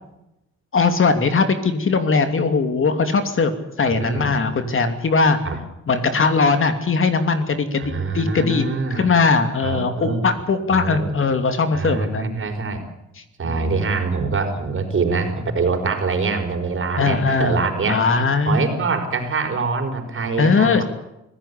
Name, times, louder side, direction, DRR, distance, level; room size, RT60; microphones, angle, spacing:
voice 1, 0.7-3.5 3.8-5.4 5.9-12.3 13.4-13.7 17.0-17.6 17.9-18.8 20.4-20.8, left 4 dB, 45° left, 8 dB, 2.8 m, -20 dB
voice 2, 3.9-4.3 5.4-5.6 7.8-9.1 9.6-10.2 10.7-11.2 11.7-12.9 13.4-18.0 18.5-20.8, right 4 dB, 45° right, 5 dB, 5.1 m, -24 dB
25.0 x 16.0 x 8.5 m, 0.88 s
cardioid pair, 90°, 30 cm